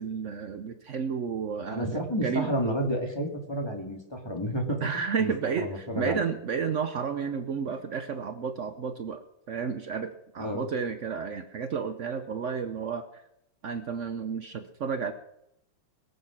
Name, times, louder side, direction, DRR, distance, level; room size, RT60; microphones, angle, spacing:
voice 1, 0.0-2.5 4.8-13.2 13.6-15.1, right 6 dB, 90° right, 8 dB, 0.6 m, -32 dB
voice 2, 1.7-4.9 5.2-5.3 5.6-6.2 10.4-10.7, equal, 10° left, 1 dB, 2.2 m, -30 dB
22.0 x 8.0 x 6.0 m, 0.81 s
omnidirectional pair, 2.4 m